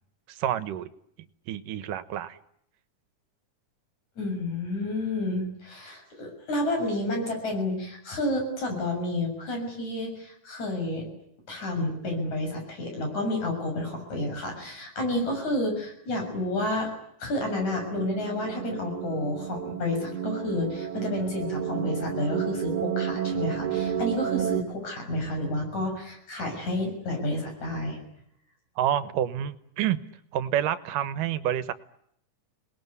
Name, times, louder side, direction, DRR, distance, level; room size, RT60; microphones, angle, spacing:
voice 1, 0.3-0.9 1.5-2.4 28.8-30.0 30.3-31.7, right 11 dB, 85° right, 14 dB, 2.8 m, -28 dB
voice 2, 4.2-11.1 11.5-16.9 17.2-28.0, left 1 dB, 60° left, 3 dB, 8.2 m, -30 dB
sound 1, 17.4-24.6, right 9 dB, 70° right, 2.9 m, -31 dB
27.0 x 20.5 x 9.6 m, 0.73 s
omnidirectional pair, 3.7 m